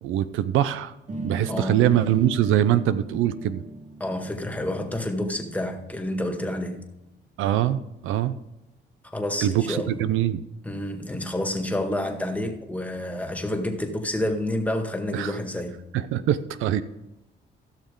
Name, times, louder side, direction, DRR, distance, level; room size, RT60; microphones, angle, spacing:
voice 1, 0.0-0.9 1.2-3.6 7.4-8.4 9.4-10.4 15.1-15.4 15.9-16.8, right 11 dB, 90° right, 0.6 m, -23 dB
sound 1, 1.1-7.0, right 2 dB, 40° right, 1.4 m, -38 dB
voice 2, 1.5-1.8 4.0-6.9 9.0-10.0 10.6-15.9, left 1 dB, 5° left, 1.8 m, -29 dB
16.0 x 6.6 x 3.8 m
cardioid pair, 90°, 20 cm